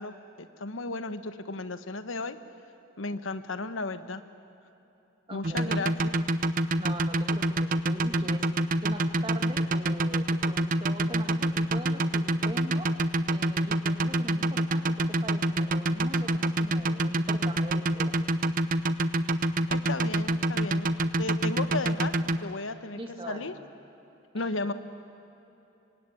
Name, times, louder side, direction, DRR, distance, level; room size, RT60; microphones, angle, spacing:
voice 1, 0.0-2.4 3.0-4.2 5.3-6.2 19.7-23.0 23.3-23.5 24.3-24.7, left 3 dB, 80° left, 11 dB, 1.3 m, -34 dB
voice 2, 5.3-5.9 6.8-8.4 8.8-12.9 13.3-18.2 23.0-23.5 24.3-24.5, right 1 dB, 25° right, 4 dB, 2.3 m, -41 dB
sound 1, 5.4-22.4, right 1 dB, 45° right, 0.8 m, -26 dB
26.5 x 24.0 x 9.1 m, 3.0 s
head